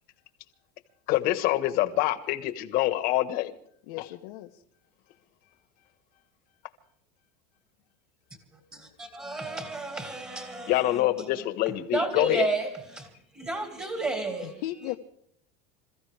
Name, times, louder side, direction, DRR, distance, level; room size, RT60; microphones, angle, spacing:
voice 1, 1.1-3.5 4.0-4.1 10.7-12.5, left 15 dB, 50° left, 1.5 m, -26 dB
voice 2, 3.9-4.5 14.6-15.0, left 15 dB, 70° left, 1.2 m, -35 dB
voice 3, 8.5-15.0, right 2 dB, 15° right, 2.1 m, -33 dB
27.5 x 14.5 x 3.5 m
supercardioid pair, 160°, 20 cm